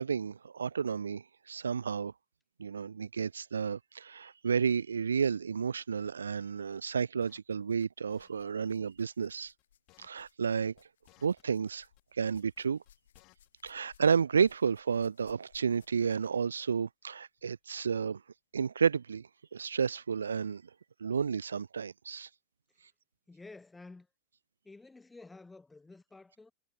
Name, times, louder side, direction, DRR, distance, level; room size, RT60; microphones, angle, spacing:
voice 1, 0.0-2.1 2.6-9.5 10.0-10.7 11.2-11.9 12.1-12.8 13.6-18.2 18.5-20.6 21.0-22.3, right 6 dB, 70° right, 0.5 m, -31 dB
sound 1, 6.7-6.9 7.6-8.4 8.6-16.4 17.4-17.5 18.3-18.4, left 10 dB, 60° left, 4.5 m, -67 dB
sound 2, 7.2-7.5 7.8-8.4 8.7-8.8 9.0-9.6 9.9-10.5 10.8-11.7 12.0-13.5 13.7-13.8 14.0-14.3, left 22 dB, 40° left, 4.1 m, -64 dB
voice 2, 23.3-24.1 24.6-26.5, left 3 dB, 10° left, 4.4 m, -51 dB
figure-of-eight pair, 90°, 0 cm